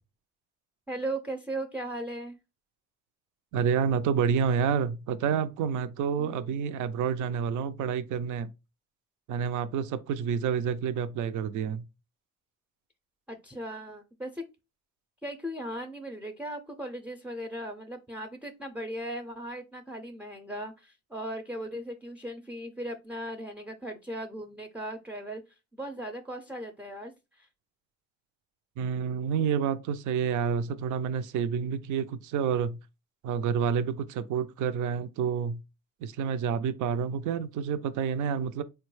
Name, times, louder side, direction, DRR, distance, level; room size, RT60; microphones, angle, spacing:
voice 1, 0.9-2.4 6.2-6.5 13.3-14.4 15.2-27.5, right 1 dB, 5° right, 0.4 m, -38 dB
voice 2, 3.5-8.5 9.3-11.9 28.8-32.8 33.2-35.6 36.0-38.6, right 7 dB, 80° right, 0.4 m, -29 dB
3.8 x 2.2 x 3.1 m
cardioid pair, 90°, 30 cm